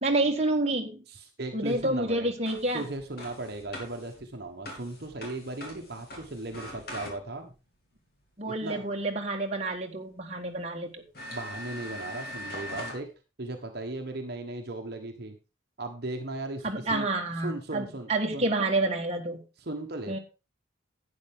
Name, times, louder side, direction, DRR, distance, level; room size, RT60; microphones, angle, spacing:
voice 1, 0.0-1.0 1.5-2.9 8.4-11.0 16.6-19.4 20.1-20.2, right 2 dB, 30° right, 1 dB, 1.5 m, -28 dB
voice 2, 1.1-2.3 2.7-7.5 8.4-9.0 11.3-13.1 13.4-15.3 15.8-17.1 17.4-18.5 19.6-20.2, right 2 dB, 50° right, 4 dB, 1.3 m, -37 dB
sound 1, 1.6-7.5 9.7-9.8 10.4-10.5 11.1-13.0, equal, 50° left, 3.3 m, -42 dB
11.5 x 9.0 x 3.6 m, 0.30 s
head